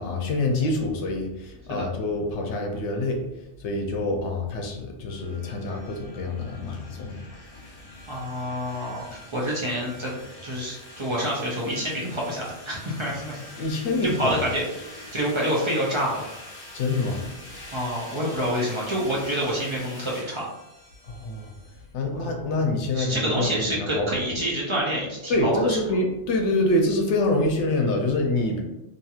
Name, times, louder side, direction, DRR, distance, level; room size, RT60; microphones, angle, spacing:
voice 1, 0.0-3.2 3.6-7.2 13.6-14.3 16.7-17.3 21.1-21.5 21.9-24.3 25.3-28.6, left 2 dB, 85° left, 2 dB, 0.9 m, -26 dB
sound 1, 5.1-21.9, left 1 dB, 35° left, 0.8 m, -44 dB
voice 2, 8.1-10.1 10.4-13.4 14.0-14.6 15.1-16.4 17.7-20.4 22.1-22.6 22.9-25.8, equal, 40° right, -4 dB, 0.4 m, -27 dB
2.8 x 2.6 x 2.3 m, 0.94 s
omnidirectional pair, 1.2 m